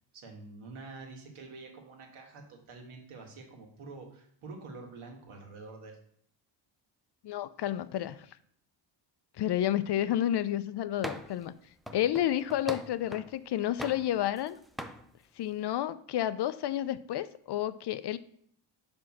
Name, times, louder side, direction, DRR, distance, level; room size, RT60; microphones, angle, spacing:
voice 1, 0.1-6.0, right 3 dB, 75° right, 1 dB, 1.9 m, -47 dB
voice 2, 7.2-8.2 9.4-11.5 11.9-14.6 15.4-18.2, left 12 dB, 55° left, 14 dB, 0.5 m, -30 dB
sound 1, 11.0-11.4 11.9-13.3 13.8-14.5 14.8-15.0, equal, ahead, 0.3 m, -41 dB
4.9 x 4.7 x 6.0 m, 0.65 s
cardioid pair, 90°, 50 cm